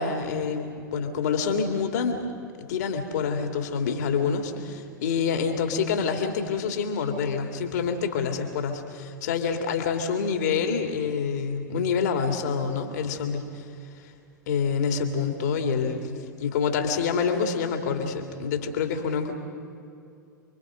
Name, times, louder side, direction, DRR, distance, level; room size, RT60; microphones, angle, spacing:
voice 1, 0.0-2.3 2.7-13.7 13.9-14.0 14.5-19.3, left 6 dB, 60° left, 5 dB, 2.7 m, -27 dB
28.5 x 23.5 x 5.2 m, 2.5 s
figure-of-eight pair, 95°, 10 cm